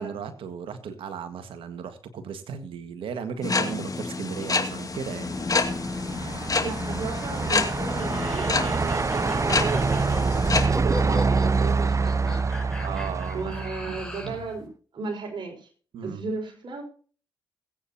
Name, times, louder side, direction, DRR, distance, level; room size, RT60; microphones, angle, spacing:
voice 1, 0.0-5.3 12.8-14.0 14.2-14.5 15.9-16.2, right 6 dB, 75° right, 10 dB, 1.7 m, -36 dB
sound 1, 3.4-10.7, left 4 dB, 40° left, 2.3 m, -28 dB
Truck, 5.0-14.4, right 4 dB, 35° right, 0.6 m, -26 dB
voice 2, 6.6-12.4 13.3-14.7 14.9-15.7 16.0-16.8, right 4 dB, 60° right, 2 dB, 5.5 m, -35 dB
sound 2, 7.9-14.4, left 1 dB, 5° left, 5.3 m, -39 dB
20.5 x 8.9 x 2.9 m, 0.41 s
hypercardioid pair, 40°, 9 cm